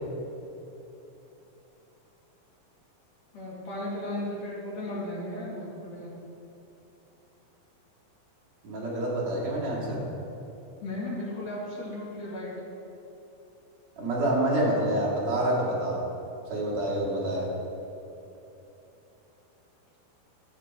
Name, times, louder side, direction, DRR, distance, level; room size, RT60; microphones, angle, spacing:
voice 1, 3.3-6.1 10.8-12.5, left 1 dB, 50° left, -6 dB, 3.1 m, -35 dB
voice 2, 8.6-10.0 14.0-16.0 16.5-17.5, right 1 dB, 55° right, -4 dB, 3.0 m, -27 dB
12.5 x 6.7 x 4.5 m, 3.0 s
omnidirectional pair, 4.0 m